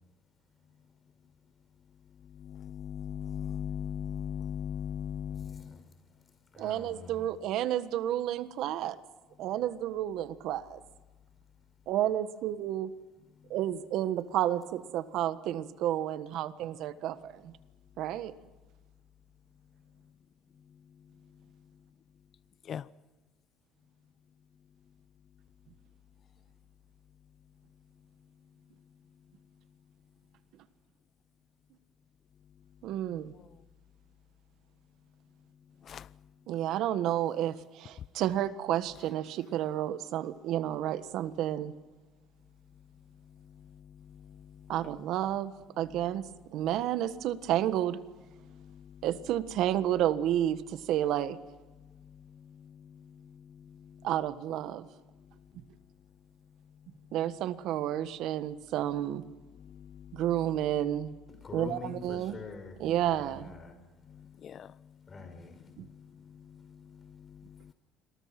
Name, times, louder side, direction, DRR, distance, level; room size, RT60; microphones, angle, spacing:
voice 1, 2.5-5.6 22.7-22.8 35.9-36.0 64.4-64.7, left 8 dB, 45° left, 18 dB, 0.7 m, -37 dB
voice 2, 5.3-5.8 6.5-7.3 61.4-62.8 63.1-63.7 65.1-65.5, left 4 dB, 25° left, 7 dB, 6.0 m, -44 dB
voice 3, 6.6-9.0 9.4-10.8 11.9-12.9 13.5-17.5 18.0-18.3 32.8-33.3 36.5-41.7 44.7-46.3 46.5-48.0 49.0-51.4 54.0-54.9 57.1-59.2 60.1-61.1 61.5-62.4 62.8-63.5 65.8-65.9, right 12 dB, 65° right, 13 dB, 1.5 m, -31 dB
29.0 x 23.0 x 6.0 m, 1.2 s
cardioid pair, 110°, 0 cm